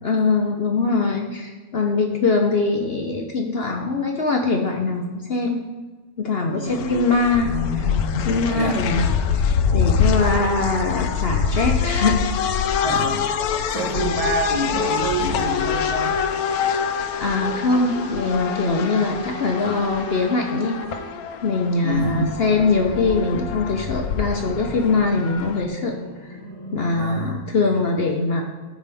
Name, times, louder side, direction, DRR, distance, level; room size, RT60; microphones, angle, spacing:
voice 1, 0.0-5.6 6.2-9.1 9.3-12.2 12.7-12.8 16.5-16.9 17.2-20.8 21.4-25.9 26.7-28.4, left 3 dB, 50° left, 2 dB, 0.9 m, -22 dB
voice 2, 6.5-7.0 8.5-8.8 12.8-13.4 13.7-16.2 21.8-22.3 26.9-27.4, right 2 dB, 65° right, 0 dB, 1.9 m, -27 dB
sound 1, 6.7-25.7, left 7 dB, 75° left, 1.1 m, -25 dB
sound 2, 15.3-21.1, right 2 dB, 35° right, 1.3 m, -39 dB
sound 3, 21.9-26.9, equal, 15° left, 1.7 m, -40 dB
14.5 x 5.1 x 3.5 m, 1.3 s
omnidirectional pair, 1.7 m